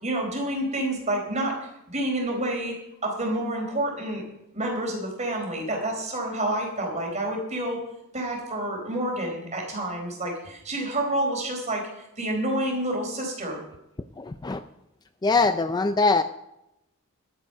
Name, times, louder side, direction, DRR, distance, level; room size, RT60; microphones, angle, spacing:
voice 1, 0.0-4.2 4.5-7.8 8.1-11.9 12.2-13.6, right 1 dB, 35° right, 1 dB, 4.2 m, -28 dB
voice 2, 14.2-14.6 15.2-16.2, left 3 dB, 20° left, 10 dB, 0.4 m, -22 dB
12.0 x 9.3 x 6.6 m, 0.85 s
head